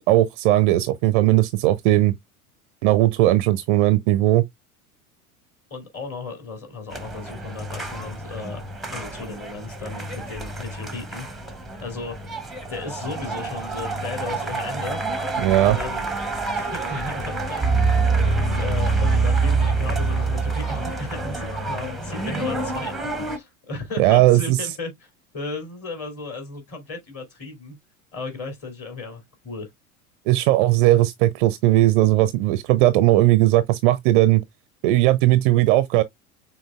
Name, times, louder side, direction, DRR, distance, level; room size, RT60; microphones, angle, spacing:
voice 1, 0.1-2.1 2.8-4.4 15.4-15.8 24.0-24.6 30.3-34.4 34.8-36.0, right 16 dB, 40° right, 0.4 m, -18 dB
voice 2, 5.7-8.6 8.9-11.3 11.8-12.2 12.7-15.0 15.6-16.1 16.5-22.9 23.3-27.8 28.1-29.7, left 3 dB, 30° left, 2.9 m, -35 dB
sound 1, 6.9-23.4, right 3 dB, ahead, 0.7 m, -26 dB
6.2 x 3.7 x 2.2 m
figure-of-eight pair, 80°, 44 cm